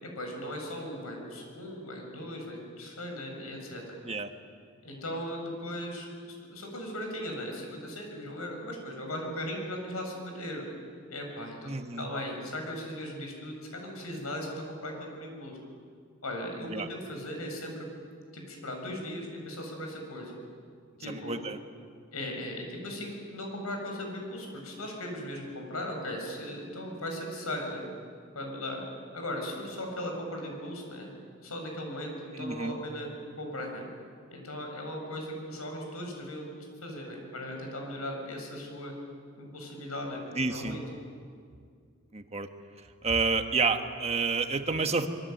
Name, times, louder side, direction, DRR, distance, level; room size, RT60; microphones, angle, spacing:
voice 1, 0.0-4.0 4.8-10.7 11.1-15.6 16.2-17.9 18.3-20.4 21.0-21.3 22.1-27.8 28.3-28.8 29.1-31.1 31.4-33.1 33.4-33.9 34.3-36.5 36.8-38.9 39.4-40.2 40.5-41.0, left 1 dB, 90° left, 2 dB, 6.9 m, -38 dB
voice 2, 11.6-12.1 16.7-16.9 21.1-21.6 32.3-32.8 40.3-40.8 42.1-42.5 43.0-45.1, right 4 dB, 30° right, 7 dB, 1.4 m, -29 dB
25.0 x 22.5 x 9.3 m, 2.1 s
head